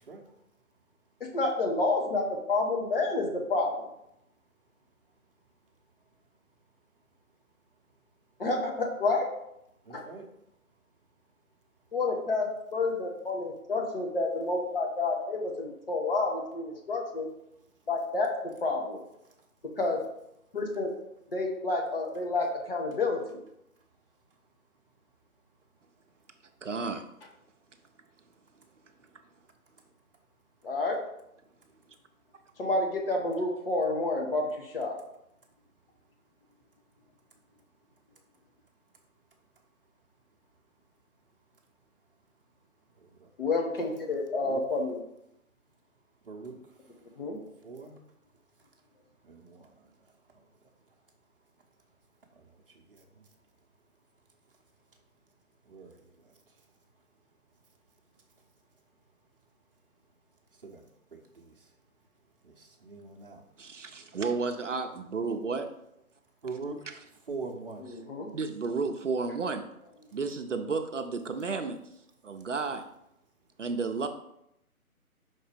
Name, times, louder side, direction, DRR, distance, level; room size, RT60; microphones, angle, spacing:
voice 1, 1.2-3.9 8.4-9.3 9.9-10.0 11.9-17.3 17.9-18.3 18.6-19.0 19.8-20.0 20.5-20.9 21.3-23.4 30.6-31.0 32.6-35.0 43.4-45.0 47.2-47.4 67.8-68.3, left 3 dB, 40° left, 0 dB, 1.4 m, -29 dB
voice 2, 9.9-10.3 43.2-43.3 44.4-44.6 46.3-46.6 47.6-48.0 49.2-49.7 52.9-53.0 55.7-56.0 60.6-60.8 61.1-61.5 62.4-63.4 66.4-66.8 67.3-67.8, right 4 dB, 40° right, 0 dB, 1.0 m, -41 dB
voice 3, 26.6-27.0 63.6-65.7 66.9-67.0 68.3-69.7 70.1-71.8 72.2-72.8 73.6-74.1, right 4 dB, 55° right, 6 dB, 0.7 m, -32 dB
5.9 x 4.2 x 5.1 m, 0.80 s
figure-of-eight pair, 155°, 44 cm